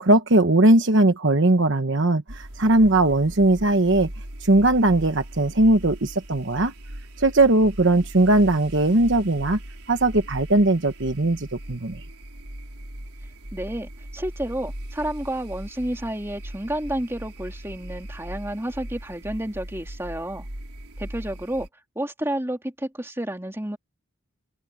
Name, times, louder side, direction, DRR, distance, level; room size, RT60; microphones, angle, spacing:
voice 1, 0.0-4.1 4.4-6.7 7.2-9.6 9.9-12.0, right 2 dB, 55° right, 1.2 m, -19 dB
sound 1, 2.3-21.7, right 1 dB, 85° right, 4.0 m, -39 dB
voice 2, 13.5-20.5 21.0-21.7 21.9-23.8, right 1 dB, 10° right, 2.9 m, -30 dB
open air
head